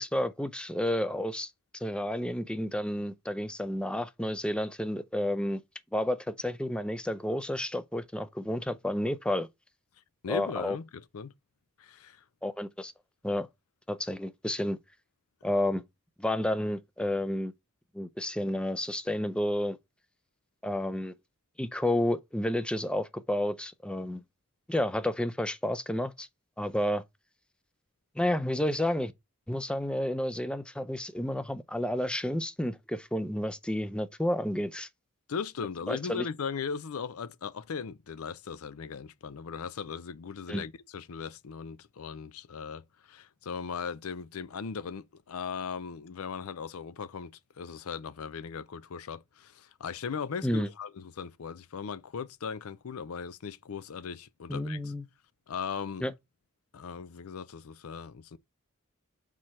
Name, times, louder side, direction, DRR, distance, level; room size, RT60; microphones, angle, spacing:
voice 1, 0.0-1.5 1.8-5.6 5.9-9.5 10.3-10.8 12.4-12.9 13.2-13.5 13.9-14.8 15.4-15.8 16.2-17.5 17.9-19.8 20.6-21.1 21.6-24.2 24.7-26.3 26.6-27.0 28.2-29.1 29.5-34.9 35.9-36.3 40.5-40.6 50.4-50.7 54.5-55.1 56.0-56.1, left 1 dB, 5° left, 0.5 m, -31 dB
voice 2, 10.2-11.3 11.8-12.2 35.3-54.9 55.5-56.1 56.7-58.4, left 6 dB, 85° left, 0.5 m, -38 dB
4.8 x 4.3 x 5.6 m
head